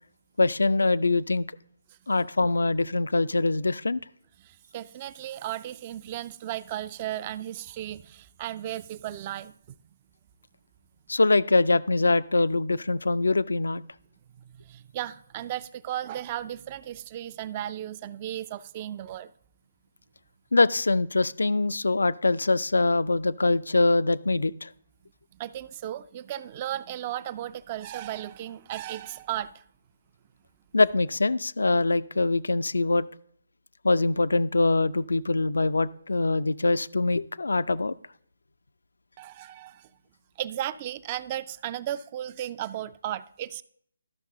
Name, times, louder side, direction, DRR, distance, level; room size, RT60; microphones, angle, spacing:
voice 1, 0.4-1.5 2.1-4.0 11.1-13.8 20.5-24.7 30.7-33.0 33.8-37.9, left 3 dB, 75° left, 0.3 m, -23 dB
voice 2, 4.4-9.5 14.6-19.3 25.3-29.6 39.2-39.9 40.4-43.6, right 12 dB, 30° right, 0.3 m, -35 dB
12.5 x 5.9 x 3.7 m
figure-of-eight pair, 150°, 0 cm